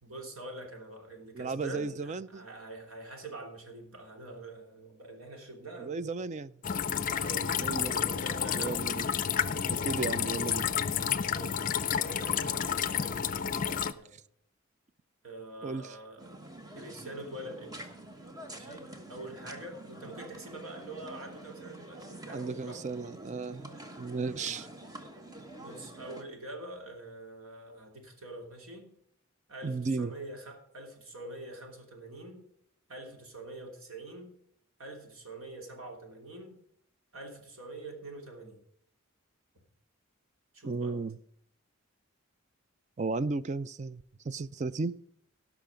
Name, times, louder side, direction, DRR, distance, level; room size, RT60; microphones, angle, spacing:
voice 1, 0.0-6.2 7.1-8.8 10.1-10.6 11.3-14.2 15.2-16.4 16.7-17.8 18.5-23.2 24.3-24.6 24.9-25.0 25.6-28.9 29.5-32.4 32.9-34.3 34.8-36.6 37.1-38.6 40.5-41.0, right 2 dB, 75° right, 2.9 m, -45 dB
voice 2, 1.3-2.5 5.8-6.5 7.6-8.1 8.5-9.1 9.7-10.6 15.6-15.8 22.3-24.7 29.6-30.1 40.6-41.1 43.0-44.9, right 4 dB, 35° right, 0.4 m, -34 dB
sound 1, 6.6-13.9, left 8 dB, 40° left, 0.5 m, -30 dB
sound 2, 16.2-26.2, right 1 dB, 15° right, 1.2 m, -47 dB
17.5 x 6.1 x 5.0 m
head